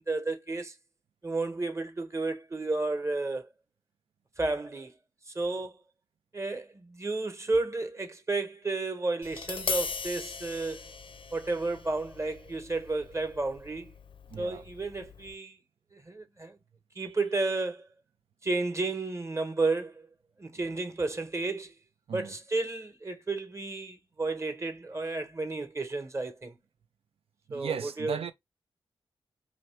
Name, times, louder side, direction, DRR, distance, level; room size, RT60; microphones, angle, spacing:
voice 1, 0.1-0.7 1.2-3.5 4.4-4.9 5.3-5.8 6.3-10.8 11.3-13.9 14.4-15.6 15.9-16.6 16.9-17.9 18.4-20.1 20.4-21.7 22.1-26.6 27.5-28.2, right 3 dB, 30° right, 1.1 m, -32 dB
Tap, 9.2-15.3, left 5 dB, 60° left, 0.6 m, -39 dB
voice 2, 14.3-14.6 22.1-22.3 27.5-28.3, right 7 dB, 75° right, 0.6 m, -36 dB
3.0 x 2.8 x 4.4 m
cardioid pair, 50°, 10 cm